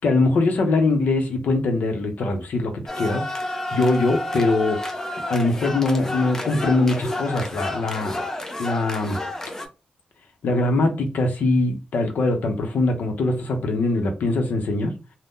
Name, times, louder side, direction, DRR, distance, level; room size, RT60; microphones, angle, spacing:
voice 1, 0.0-3.2 3.7-4.8 5.3-8.3 8.6-9.2 10.4-14.9, left 2 dB, 75° left, 0.7 m, -22 dB
sound 1, 2.9-9.7, left 1 dB, 15° left, 0.5 m, -30 dB
2.6 x 2.1 x 3.5 m
wide cardioid pair, 160°, 3 cm